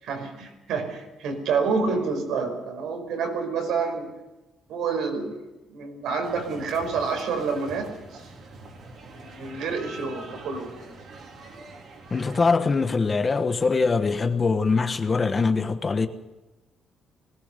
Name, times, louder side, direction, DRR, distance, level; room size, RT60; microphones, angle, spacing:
voice 1, 0.0-4.1 4.7-5.3 5.7-8.2 9.1-10.9, right 5 dB, 80° right, 5.3 m, -28 dB
sound 1, 6.2-12.5, right 2 dB, 55° right, 4.0 m, -44 dB
voice 2, 12.1-16.1, left 4 dB, 25° left, 1.2 m, -23 dB
20.5 x 19.0 x 6.7 m
cardioid pair, 155°, 0 cm